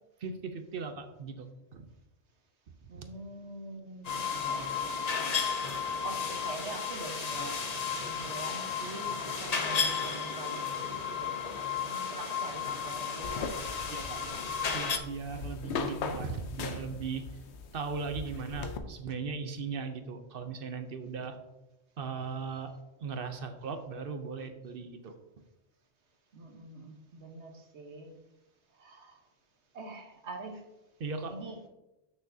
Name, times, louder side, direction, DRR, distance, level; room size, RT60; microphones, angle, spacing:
voice 1, 0.2-1.9 2.8-3.1 13.9-14.2 14.7-17.3 17.7-21.4 22.0-22.7 23.0-25.2 31.0-31.3, right 5 dB, 60° right, 7 dB, 0.9 m, -38 dB
voice 2, 2.9-7.6 7.9-11.4 11.8-14.4 26.3-28.2 28.7-29.2 29.7-30.7 31.3-31.6, right 2 dB, 90° right, 3 dB, 1.4 m, -45 dB
sound 1, 4.0-15.0, left 6 dB, 45° left, 0.7 m, -33 dB
sound 2, 13.2-18.8, left 5 dB, 85° left, 1.0 m, -39 dB
8.9 x 6.2 x 2.7 m, 0.95 s
omnidirectional pair, 1.1 m